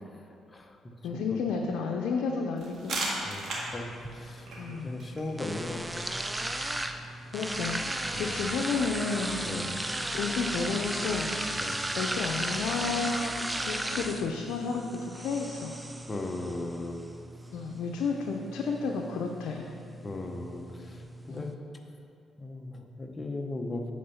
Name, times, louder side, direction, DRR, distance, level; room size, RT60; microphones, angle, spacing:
voice 1, 0.5-1.4 3.2-6.1 8.1-8.4 9.4-9.7 11.6-11.8 16.1-17.0 20.0-21.5 22.4-23.9, left 2 dB, 25° left, 3 dB, 0.8 m, -38 dB
voice 2, 1.0-3.1 4.6-4.9 7.3-9.7 10.1-11.3 11.9-15.7 17.5-19.6 21.3-21.5, left 5 dB, 85° left, 1 dB, 0.5 m, -32 dB
sound 1, 2.6-8.1, right 2 dB, 65° right, 1.8 m, -39 dB
sound 2, 3.5-21.5, right 1 dB, 10° right, 0.5 m, -36 dB
8.4 x 4.4 x 5.6 m, 2.6 s
cardioid pair, 90°, 0 cm